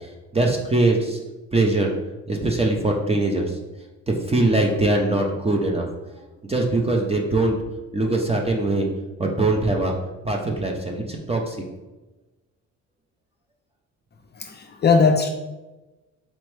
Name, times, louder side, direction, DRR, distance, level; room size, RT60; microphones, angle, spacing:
voice 1, 0.3-1.2 1.5-1.9 2.3-3.5 4.3-5.8 6.5-7.5 7.9-8.9 9.2-9.9 10.2-11.6, right 2 dB, 20° right, 1 dB, 0.6 m, -21 dB
voice 2, 14.4-15.3, left 5 dB, 35° left, 4 dB, 0.4 m, -19 dB
4.3 x 2.9 x 3.2 m, 1.1 s
cardioid pair, 90°, 30 cm